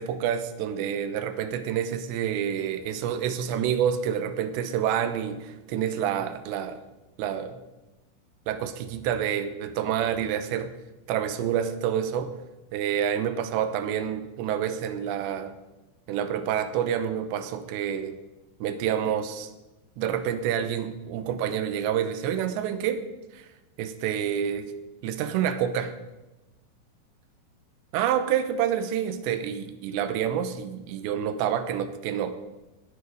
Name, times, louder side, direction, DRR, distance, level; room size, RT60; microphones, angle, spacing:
voice 1, 0.0-6.8 7.2-7.6 8.5-10.7 11.1-12.3 12.7-15.5 16.1-18.2 18.6-19.5 20.0-23.0 23.3-23.4 23.8-24.7 25.0-25.9 27.9-32.4, right 9 dB, 80° right, 10 dB, 3.1 m, -28 dB
18.5 x 7.1 x 6.5 m, 1.1 s
omnidirectional pair, 5.2 m